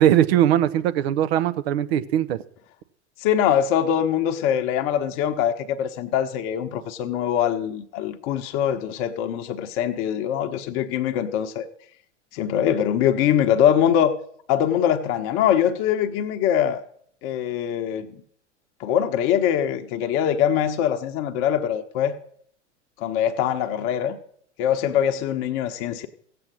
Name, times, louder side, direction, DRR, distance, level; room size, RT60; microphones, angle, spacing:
voice 1, 0.0-2.4, right 11 dB, 60° right, 0.9 m, -20 dB
voice 2, 3.2-11.7 12.3-14.1 14.5-16.8 17.2-18.2 18.8-22.2 23.0-24.2 24.6-26.1, left 9 dB, 45° left, 1.0 m, -23 dB
16.0 x 7.9 x 6.3 m
figure-of-eight pair, 85°, 36 cm